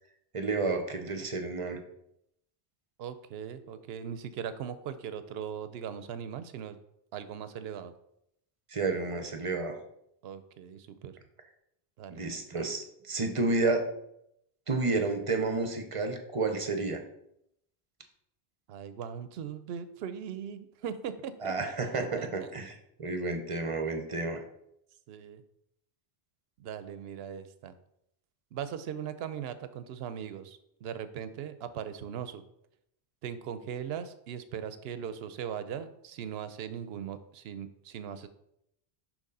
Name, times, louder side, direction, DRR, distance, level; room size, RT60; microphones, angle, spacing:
voice 1, 0.3-1.8 8.7-9.8 12.1-13.9 14.7-17.0 21.4-22.7 23.0-24.4, right 3 dB, 35° right, 5 dB, 0.7 m, -30 dB
voice 2, 3.0-6.8 7.1-7.9 10.2-11.2 12.0-12.2 18.7-21.5 21.9-22.5 25.1-25.4 26.6-27.7 28.5-32.4 33.2-38.3, right 8 dB, 75° right, 11 dB, 0.8 m, -39 dB
6.4 x 3.1 x 5.3 m, 0.77 s
omnidirectional pair, 1.0 m